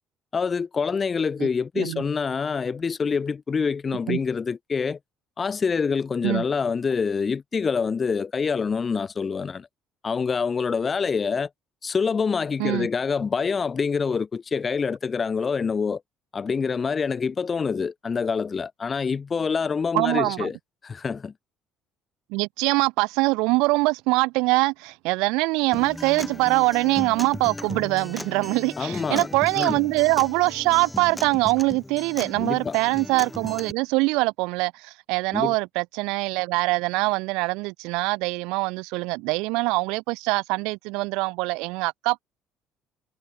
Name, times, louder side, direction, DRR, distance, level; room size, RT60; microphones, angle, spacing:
voice 1, 0.3-5.0 5.4-9.7 10.0-11.5 11.8-16.0 16.3-20.6 20.8-21.3 28.8-29.3 29.6-29.8 32.3-32.8 35.3-35.5, left 5 dB, 35° left, 1.3 m, -26 dB
voice 2, 19.9-20.5 22.3-42.2, right 25 dB, 80° right, 1.4 m, -23 dB
Acoustic guitar, 25.7-33.7, left 1 dB, 10° left, 1.2 m, -37 dB
supercardioid pair, 75°, 0 cm